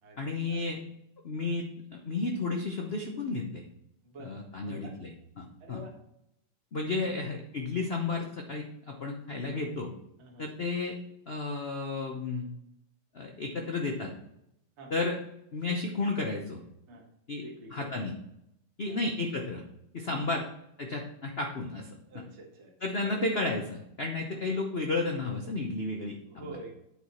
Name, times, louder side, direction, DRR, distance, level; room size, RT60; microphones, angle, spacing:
voice 1, 0.2-0.8 1.2-1.7 1.9-3.6 4.2-5.1 5.4-5.8 6.7-9.9 10.4-10.9 11.3-12.5 13.1-14.1 14.9-15.2 15.5-16.6 17.3-17.4 17.7-18.1 18.8-19.6 19.9-20.4 20.8-21.9 22.1-22.2 22.8-26.5, left 3 dB, 80° left, 1 dB, 0.5 m, -32 dB
voice 2, 4.0-4.4 4.6-4.9 5.6-5.9 7.0-7.1 9.5-9.7 10.2-10.5 14.8-14.9 16.9-17.1 17.4-17.9 18.9-19.0 20.1-20.2 22.0-22.7 23.0-23.1 24.3-24.4 26.3-26.7, right 2 dB, 35° right, 0 dB, 1.5 m, -47 dB
9.1 x 4.8 x 4.3 m, 0.80 s
omnidirectional pair, 2.4 m